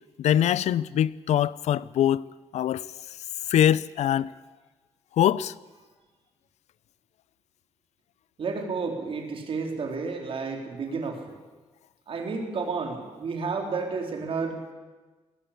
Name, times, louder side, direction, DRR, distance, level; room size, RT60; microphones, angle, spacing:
voice 1, 0.2-2.2 2.5-2.9 3.5-4.3 5.2-5.5, left 11 dB, 85° left, 0.6 m, -23 dB
voice 2, 8.4-11.2 12.1-14.7, right 4 dB, 55° right, 3.9 m, -31 dB
19.5 x 15.5 x 8.5 m
cardioid pair, 115°, 11 cm